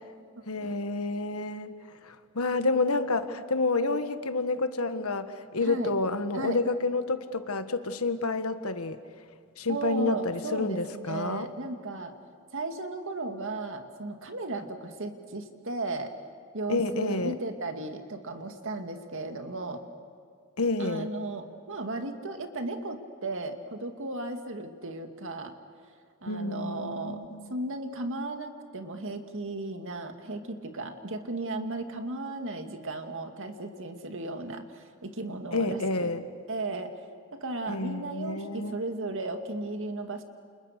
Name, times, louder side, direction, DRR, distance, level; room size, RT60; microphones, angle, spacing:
voice 1, 0.5-1.7 2.0-9.0 9.6-11.5 16.7-17.3 20.6-21.1 26.3-27.5 35.5-36.2 37.7-38.8, left 3 dB, 75° left, 10 dB, 1.5 m, -29 dB
voice 2, 5.6-5.9 6.3-6.6 9.7-12.1 12.5-16.1 16.5-19.8 20.8-25.5 26.2-27.2 27.5-36.1 36.5-36.9 37.3-40.2, right 2 dB, 60° right, 6 dB, 2.2 m, -35 dB
29.5 x 28.5 x 6.7 m, 2.3 s
head